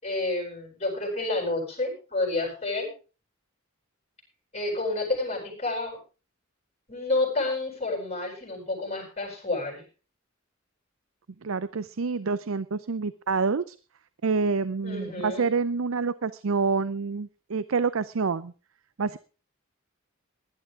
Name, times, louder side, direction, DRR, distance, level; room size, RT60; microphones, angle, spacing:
voice 1, 0.0-2.9 4.5-6.0 6.9-9.8 14.8-15.5, left 2 dB, 30° left, 2 dB, 7.7 m, -29 dB
voice 2, 11.4-13.8 14.2-18.5 19.0-19.2, right 4 dB, 70° right, 16 dB, 0.6 m, -27 dB
19.0 x 11.5 x 3.7 m, 0.35 s
head